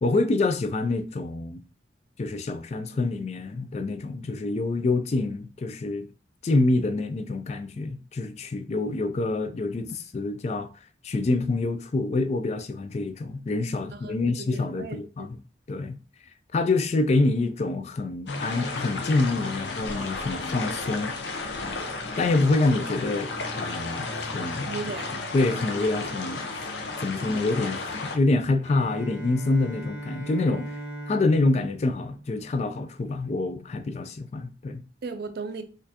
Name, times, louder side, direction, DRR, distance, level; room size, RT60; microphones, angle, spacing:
voice 1, 0.0-1.6 2.2-6.1 6.4-10.7 11.0-15.3 15.7-16.0 16.5-21.2 22.2-24.8 25.3-26.7 27.0-30.8 31.1-34.8, left 2 dB, 35° left, 0.3 m, -26 dB
voice 2, 13.9-15.3 24.6-25.2 35.0-35.6, right 4 dB, 55° right, 0.4 m, -37 dB
sound 1, 18.3-28.2, left 3 dB, 65° left, 0.6 m, -33 dB
Bowed string instrument, 28.6-32.7, right 1 dB, 80° left, 1.0 m, -39 dB
4.2 x 2.5 x 2.8 m
head